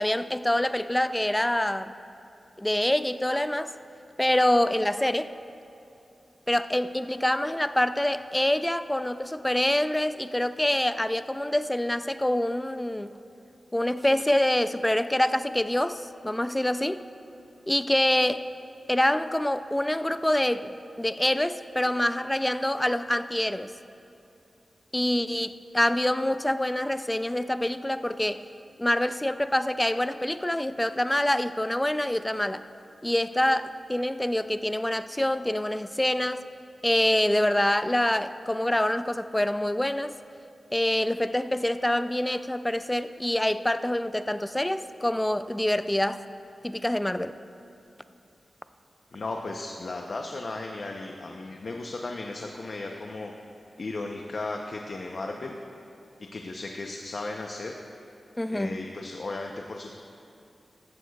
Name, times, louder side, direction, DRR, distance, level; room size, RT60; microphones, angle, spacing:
voice 1, 0.0-1.9 2.6-3.7 4.2-5.3 6.5-13.1 13.7-17.0 17.7-18.5 18.9-23.7 24.9-28.5 28.8-32.6 33.0-36.4 36.8-40.1 40.7-46.2 46.6-47.4 58.4-58.8, left 1 dB, 10° left, 12 dB, 0.3 m, -26 dB
voice 2, 49.1-53.3 53.8-55.6 56.3-57.7 58.5-60.0, left 2 dB, 55° left, 2 dB, 0.6 m, -35 dB
14.5 x 14.0 x 2.3 m, 2.7 s
wide cardioid pair, 95°, 0 cm